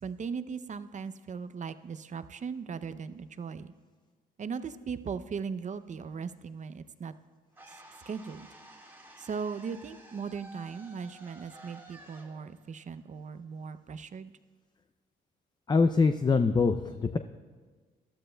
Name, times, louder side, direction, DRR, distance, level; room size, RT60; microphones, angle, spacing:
voice 1, 0.0-3.7 4.4-7.1 7.7-7.8 8.1-8.5 9.2-14.3, right 6 dB, 40° right, 12 dB, 0.6 m, -38 dB
sound 1, 7.5-13.6, right 1 dB, 10° right, 2.0 m, -53 dB
voice 2, 15.7-17.2, left 4 dB, 20° left, 8 dB, 0.5 m, -24 dB
20.0 x 13.0 x 2.3 m, 1.4 s
cardioid pair, 90°, 20 cm